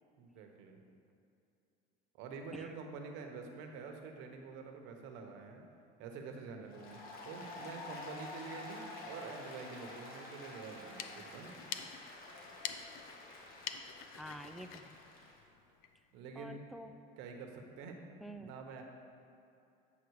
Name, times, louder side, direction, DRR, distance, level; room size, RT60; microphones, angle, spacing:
voice 1, 0.2-0.8 2.1-5.6 6.0-11.5 16.1-16.6 17.2-18.0 18.4-18.8, right 5 dB, 75° right, 3 dB, 1.2 m, -47 dB
Applause, 6.7-15.4, left 2 dB, 50° left, 1.6 m, -49 dB
sound 1, 10.7-16.0, left 9 dB, 75° left, 0.5 m, -47 dB
voice 2, 14.0-15.0 16.3-16.9 18.2-18.5, equal, ahead, 7 dB, 0.4 m, -48 dB
8.4 x 5.8 x 4.7 m, 2.7 s
supercardioid pair, 115°, 20 cm